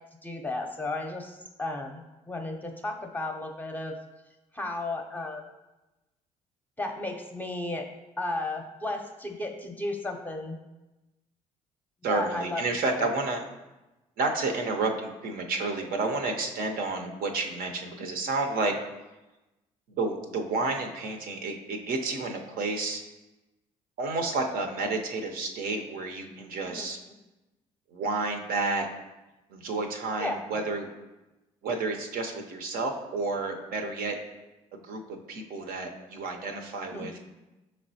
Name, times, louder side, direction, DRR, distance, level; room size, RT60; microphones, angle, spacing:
voice 1, 0.2-4.0 4.5-5.4 6.8-7.9 8.2-10.6 12.1-12.6 13.0-13.1 26.6-26.9 30.2-30.4 36.9-37.1, left 2 dB, 10° left, 3 dB, 0.6 m, -34 dB
voice 2, 12.0-13.4 14.2-18.7 20.0-23.0 24.0-27.0 27.9-28.9 29.5-30.9 31.6-34.2 34.7-37.2, right 3 dB, 60° right, 4 dB, 0.6 m, -30 dB
5.3 x 3.1 x 2.7 m, 1.0 s
hypercardioid pair, 50°, 17 cm